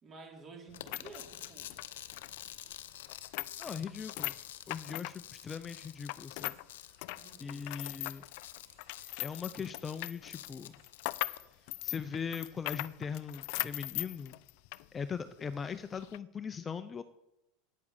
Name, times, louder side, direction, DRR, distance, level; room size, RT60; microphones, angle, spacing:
voice 1, 0.0-1.8 7.2-7.7, right 3 dB, 30° right, 2 dB, 3.6 m, -52 dB
sound 1, 0.7-11.4, left 12 dB, 85° left, 0.8 m, -49 dB
sound 2, 0.7-6.6 6.9-14.9 15.2-15.3 15.9-16.2, left 22 dB, 65° left, 0.4 m, -40 dB
sound 3, 1.2-1.9 2.6-3.2 3.5-4.0 4.3-4.9 5.4-5.9 6.5-7.1 7.6-8.2 8.7-9.6 10.8-10.9 11.2-12.0, right 6 dB, 55° right, 3.3 m, -71 dB
voice 2, 3.6-4.3 4.7-6.5 7.4-8.2 9.2-10.8 11.8-14.3 14.9-17.0, left 6 dB, 20° left, 11 dB, 0.6 m, -40 dB
9.6 x 8.6 x 7.1 m, 0.87 s
supercardioid pair, 120°, 0 cm